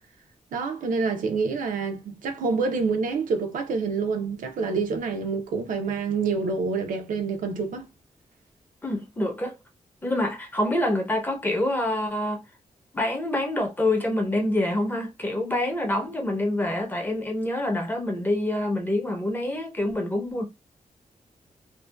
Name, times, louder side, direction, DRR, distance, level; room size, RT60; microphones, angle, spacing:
voice 1, 0.5-7.9, right 4 dB, 90° right, 0.6 m, -27 dB
voice 2, 8.8-9.5 10.0-12.4 12.9-20.5, left 1 dB, 15° left, 0.6 m, -26 dB
2.6 x 2.1 x 2.2 m
wide cardioid pair, 165°, 13 cm